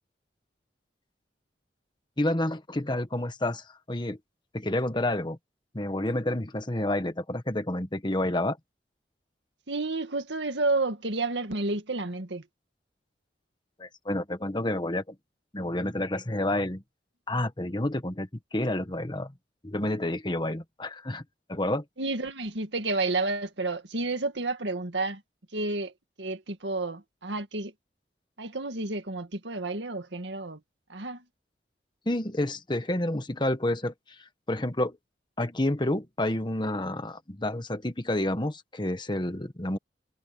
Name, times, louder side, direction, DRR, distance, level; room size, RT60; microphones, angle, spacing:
voice 1, 2.2-4.2 4.5-5.4 5.7-8.6 13.8-15.1 15.5-16.8 17.3-19.3 19.6-21.2 21.5-21.8 32.0-35.0 35.4-39.8, left 1 dB, 25° left, 1.5 m, -29 dB
voice 2, 9.7-12.5 22.0-25.2 25.5-25.9 26.2-27.7 28.4-30.6 30.9-31.2, right 2 dB, 85° right, 2.0 m, -30 dB
head